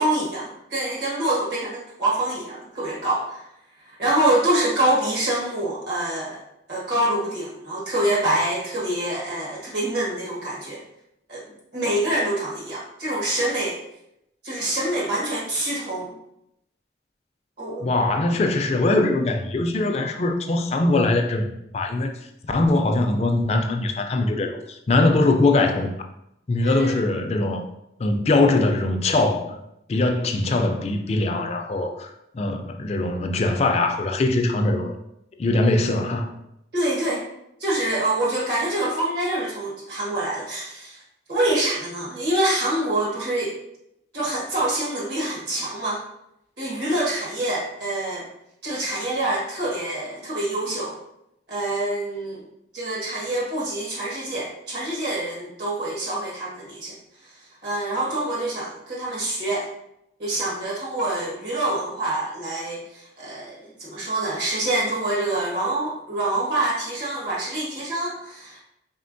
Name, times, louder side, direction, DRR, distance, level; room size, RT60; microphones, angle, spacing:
voice 1, 0.0-3.4 4.0-6.4 6.7-10.8 11.3-11.4 11.7-13.8 14.4-16.1 17.6-17.9 26.6-27.0 36.7-37.3 37.6-41.0 41.3-43.5 44.1-46.0 46.6-48.3 48.6-51.0 51.5-52.4 52.7-57.0 57.2-57.3 57.6-59.7 60.2-68.6, right 1 dB, 65° right, -5 dB, 1.3 m, -26 dB
voice 2, 17.8-22.1 22.4-25.9 26.5-27.7 28.0-29.6 29.9-34.9 35.4-36.3, left 2 dB, 35° left, 5 dB, 0.3 m, -22 dB
4.3 x 3.7 x 2.6 m, 0.80 s
head